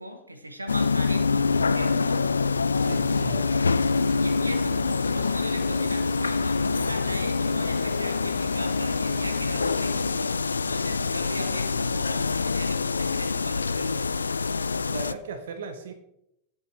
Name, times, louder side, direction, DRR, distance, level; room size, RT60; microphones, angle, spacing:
voice 1, 0.0-2.3 4.2-14.1, equal, 85° right, 8 dB, 1.1 m, -38 dB
sound 1, 0.7-15.1, left 4 dB, 75° left, 0.4 m, -25 dB
sound 2, 2.7-3.3 3.7-10.1, left 6 dB, 25° left, 1.6 m, -46 dB
voice 2, 2.8-3.7 14.6-15.9, right 5 dB, 60° right, 9 dB, 1.1 m, -38 dB
18.0 x 8.4 x 3.3 m, 0.78 s
figure-of-eight pair, 90°, 0 cm